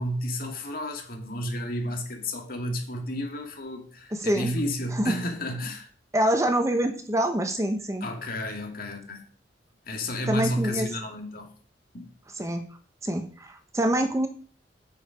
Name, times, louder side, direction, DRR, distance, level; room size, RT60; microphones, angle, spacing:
voice 1, 0.0-5.9 8.0-9.3 9.8-11.5 11.9-12.1, equal, 55° left, 2.2 m, -32 dB
voice 2, 4.1-4.5 4.9-5.2 6.1-8.1 10.3-10.9 12.4-12.6 13.0-14.3, right 1 dB, 15° right, 1.0 m, -25 dB
8.7 x 6.6 x 5.0 m
head